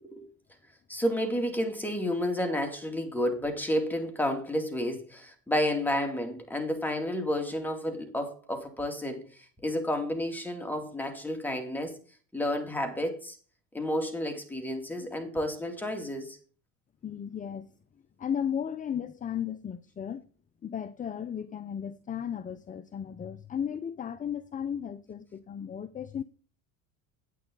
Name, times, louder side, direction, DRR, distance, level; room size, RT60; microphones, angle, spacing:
voice 1, 0.9-12.0 12.3-13.4 13.7-16.4, left 1 dB, 5° left, 2.5 m, -31 dB
voice 2, 17.0-17.7 18.2-20.2 20.6-26.2, left 8 dB, 20° left, 0.5 m, -35 dB
9.4 x 8.8 x 3.9 m
supercardioid pair, 100°, 40 cm